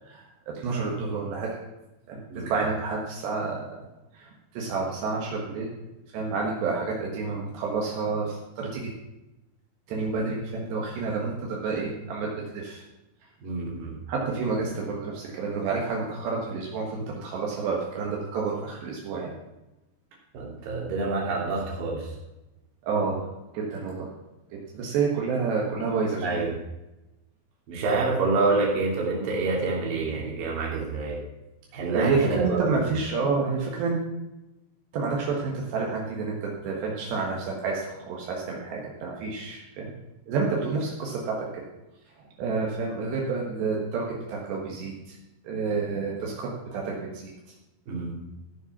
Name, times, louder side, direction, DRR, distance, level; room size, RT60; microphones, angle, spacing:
voice 1, 0.1-1.5 2.1-3.7 4.1-5.7 6.1-8.9 9.9-12.8 14.1-19.3 22.8-23.2 23.5-24.1 24.7-26.4 31.9-34.0 34.9-39.9 40.3-41.6 42.2-45.2 45.4-47.3, right 4 dB, 75° right, -2 dB, 3.7 m, -29 dB
voice 2, 13.4-14.0 20.3-22.1 26.2-26.5 27.7-31.2 31.7-32.6 47.9-48.2, right 3 dB, 55° right, -3 dB, 4.1 m, -27 dB
14.5 x 7.2 x 5.9 m, 0.99 s
omnidirectional pair, 5.0 m